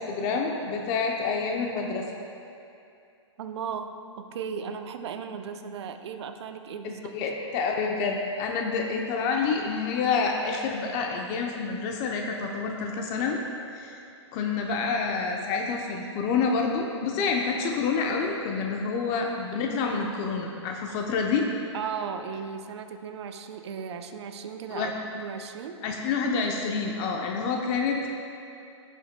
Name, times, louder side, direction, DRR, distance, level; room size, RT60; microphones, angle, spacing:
voice 1, 0.0-2.1 6.8-13.4 13.7-13.9 14.3-21.5 24.7-24.9 25.8-28.1, left 5 dB, 35° left, 1 dB, 0.7 m, -28 dB
voice 2, 3.4-7.2 21.7-25.8, right 6 dB, 60° right, 7 dB, 0.6 m, -36 dB
15.5 x 5.4 x 2.2 m, 2.5 s
hypercardioid pair, 130°, 16 cm